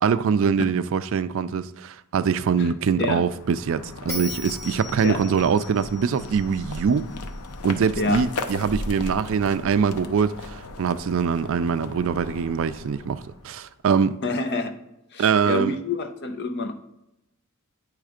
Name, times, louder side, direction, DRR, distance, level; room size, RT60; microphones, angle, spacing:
voice 1, 0.0-7.0 7.6-14.2 15.2-15.8, right 6 dB, 65° right, 0.4 m, -23 dB
sound 1, 3.0-13.7, left 2 dB, 90° left, 0.7 m, -37 dB
Bell, 4.1-7.3, left 2 dB, 15° left, 2.0 m, -38 dB
voice 2, 14.2-14.7 15.1-16.7, left 3 dB, 50° left, 0.7 m, -27 dB
8.9 x 3.2 x 4.9 m
head